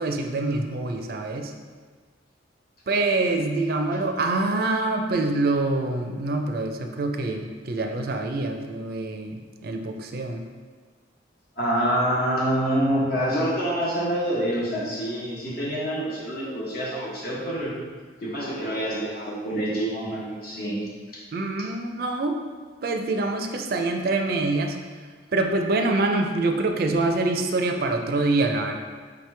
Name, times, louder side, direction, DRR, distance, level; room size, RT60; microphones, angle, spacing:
voice 1, 0.0-1.5 2.9-10.4 21.3-22.4 22.8-24.8 25.3-28.8, right 2 dB, 55° right, 4 dB, 0.4 m, -25 dB
voice 2, 11.6-17.7 18.2-20.8, equal, 55° left, -6 dB, 1.2 m, -26 dB
5.1 x 3.0 x 3.3 m, 1.5 s
head